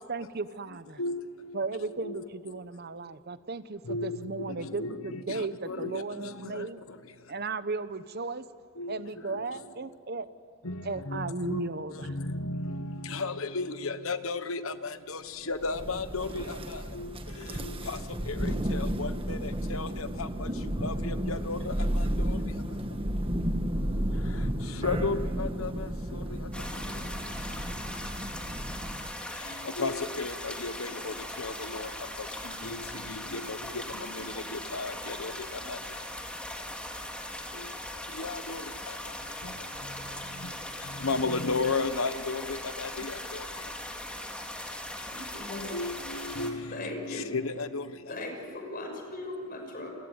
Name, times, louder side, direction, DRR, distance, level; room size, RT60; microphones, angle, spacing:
voice 1, 0.0-1.0 1.5-6.8 7.3-8.4 8.9-10.3 10.8-12.1, right 3 dB, 45° right, 13 dB, 0.9 m, -35 dB
voice 2, 1.0-1.7 2.0-2.5 3.9-6.7 8.8-9.1 9.3-9.4 10.6-11.6 12.0-18.0 18.3-20.5 20.8-22.4 24.3-24.5 24.8-26.4 29.6-31.9 32.4-35.3 35.7-35.8 37.6-37.7 38.2-38.6 39.4-39.5 40.4-40.5 41.0-43.4 45.7-47.9, left 3 dB, 70° left, 11 dB, 1.3 m, -34 dB
Thunder, 15.6-29.2, equal, 25° right, 1.4 m, -32 dB
sound 1, 26.5-46.5, left 1 dB, 5° left, 2.4 m, -39 dB
voice 3, 44.9-45.8 46.7-47.3 48.1-49.9, left 2 dB, 40° left, 3 dB, 6.2 m, -39 dB
29.0 x 22.0 x 8.1 m, 2.7 s
head